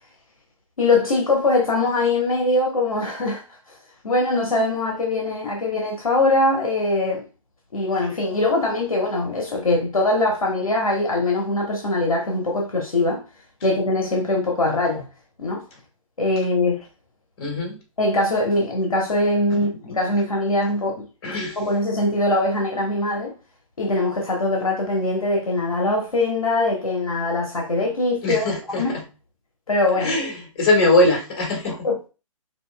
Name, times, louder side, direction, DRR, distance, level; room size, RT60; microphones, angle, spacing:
voice 1, 0.8-3.4 4.0-7.3 7.7-13.2 13.6-15.1 15.4-15.6 16.2-16.8 18.0-21.1 21.6-23.3 23.8-29.0 29.7-30.1 31.6-32.1, left 2 dB, 85° left, 1.1 m, -22 dB
voice 2, 17.4-17.8 19.5-19.7 21.2-21.6 28.2-29.0 30.0-31.9, left 2 dB, 45° left, 2.1 m, -21 dB
5.5 x 2.6 x 2.2 m
figure-of-eight pair, 135°, 18 cm